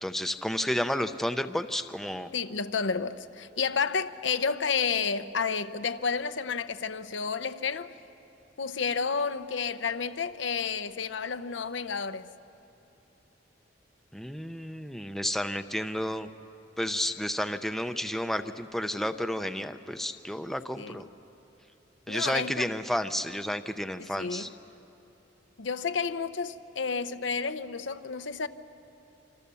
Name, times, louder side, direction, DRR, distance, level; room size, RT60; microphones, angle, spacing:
voice 1, 0.0-2.3 14.1-16.3 16.8-21.0 22.1-24.5, equal, ahead, 0.6 m, -31 dB
voice 2, 2.3-7.9 8.6-12.3 20.8-21.0 22.1-22.7 24.0-24.5 25.6-28.5, left 5 dB, 85° left, 0.8 m, -31 dB
27.0 x 26.0 x 7.0 m
head